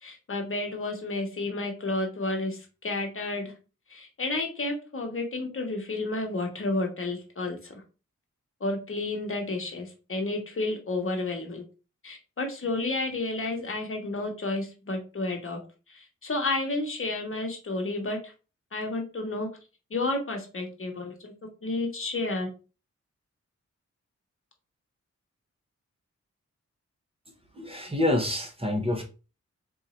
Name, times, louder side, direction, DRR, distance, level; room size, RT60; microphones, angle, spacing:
voice 1, 0.0-3.5 3.9-7.7 8.6-11.6 12.0-15.6 15.9-18.3 18.7-19.5 19.9-22.5, left 2 dB, 45° left, 2 dB, 1.1 m, -31 dB
voice 2, 27.5-29.0, left 1 dB, 20° right, 2 dB, 0.9 m, -27 dB
3.9 x 2.7 x 4.2 m, 0.33 s
wide cardioid pair, 130°, 29 cm